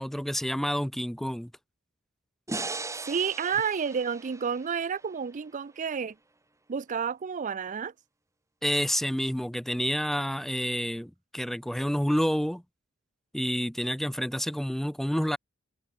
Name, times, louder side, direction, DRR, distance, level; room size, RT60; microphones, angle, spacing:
voice 1, 0.0-1.5 8.6-12.6 13.3-15.4, equal, ahead, 0.7 m, -29 dB
sound 1, 2.5-5.7, right 3 dB, 15° right, 2.2 m, -38 dB
voice 2, 3.1-6.2 6.7-7.9, right 6 dB, 40° right, 0.4 m, -30 dB
head